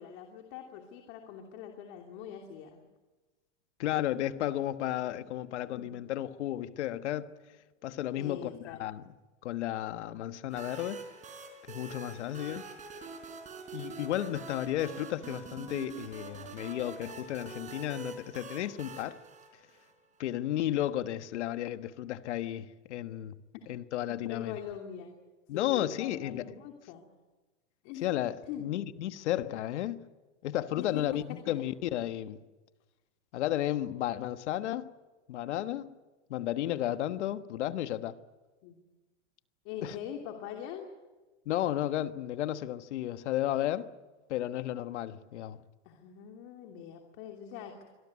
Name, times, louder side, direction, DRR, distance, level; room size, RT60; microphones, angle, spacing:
voice 1, 0.0-2.8 5.1-5.2 5.7-5.9 8.1-8.8 24.2-25.1 25.5-27.0 27.8-28.1 28.5-28.6 30.8-31.1 31.5-31.6 38.6-38.8 39.6-40.9 45.8-47.9, left 9 dB, 50° left, 3.0 m, -42 dB
voice 2, 3.8-7.3 7.8-9.1 9.4-11.0 11.7-12.7 13.7-19.2 20.2-23.4 23.7-24.6 25.5-26.5 28.0-30.0 30.4-32.4 33.3-34.9 35.3-36.0 36.3-38.2 39.8-40.0 41.4-43.9 44.3-45.6, left 13 dB, 75° left, 1.4 m, -33 dB
sound 1, 10.5-20.1, right 5 dB, 20° right, 4.5 m, -45 dB
25.0 x 18.5 x 9.7 m
supercardioid pair, 140°, 35 cm